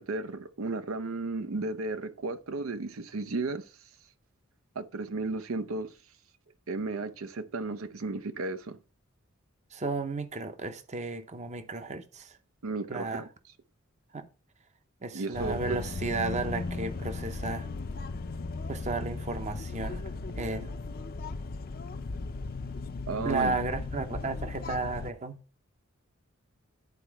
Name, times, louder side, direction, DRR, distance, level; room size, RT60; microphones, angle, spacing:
voice 1, 0.0-3.6 4.8-5.9 6.7-8.8 12.6-13.3 15.1-15.8 23.1-23.5, right 3 dB, 80° right, 0.6 m, -34 dB
voice 2, 9.7-12.4 12.9-13.3 14.1-14.3 15.0-17.7 18.7-20.0 20.3-20.8 23.2-25.4, right 3 dB, 35° right, 0.7 m, -33 dB
sound 1, 15.3-25.1, left 3 dB, 45° left, 0.6 m, -36 dB
11.0 x 4.3 x 4.6 m
head